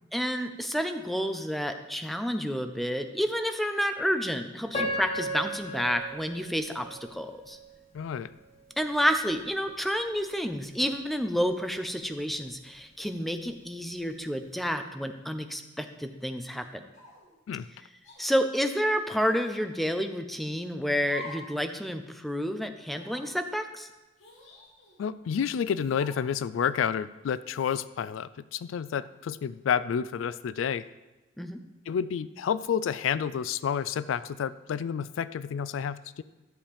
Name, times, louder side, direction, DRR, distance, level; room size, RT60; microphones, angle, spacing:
voice 1, 0.1-7.6 8.8-16.8 18.2-23.9 31.4-31.6, equal, ahead, 6 dB, 0.5 m, -30 dB
Piano, 4.7-7.7 8.3-8.4 9.1-9.3, equal, 30° left, 1.5 m, -35 dB
voice 2, 7.9-8.3 17.5-17.7 25.0-30.9 31.9-36.2, left 7 dB, 85° left, 16 dB, 0.3 m, -30 dB
sound 1, 16.9-17.3 18.0-18.2 19.2-19.7 21.0-21.5 21.9-22.0 22.8-23.3 24.2-25.1 25.9-26.3, left 3 dB, 70° left, 2.7 m, -47 dB
13.0 x 7.1 x 3.4 m, 1.1 s
head